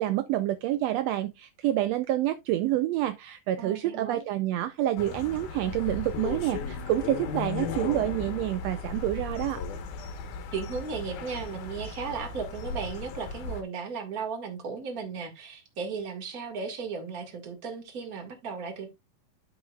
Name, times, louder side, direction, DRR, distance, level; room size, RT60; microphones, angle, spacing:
voice 1, 0.0-9.6, right 13 dB, 80° right, 1.5 m, -28 dB
voice 2, 3.6-4.2 10.5-18.9, right 5 dB, 35° right, 1.8 m, -36 dB
sound 1, 5.0-13.6, left 4 dB, 80° left, 2.7 m, -36 dB
13.5 x 4.8 x 2.3 m
omnidirectional pair, 3.5 m